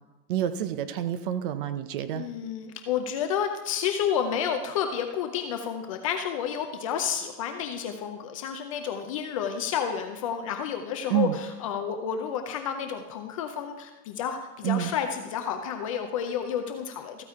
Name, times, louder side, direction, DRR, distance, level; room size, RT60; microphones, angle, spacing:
voice 1, 0.3-2.2 11.1-11.4 14.6-14.9, right 11 dB, 35° right, 11 dB, 0.5 m, -28 dB
voice 2, 2.1-17.2, left 8 dB, 25° left, 6 dB, 0.4 m, -30 dB
14.0 x 8.9 x 3.6 m, 1.2 s
hypercardioid pair, 140°, 48 cm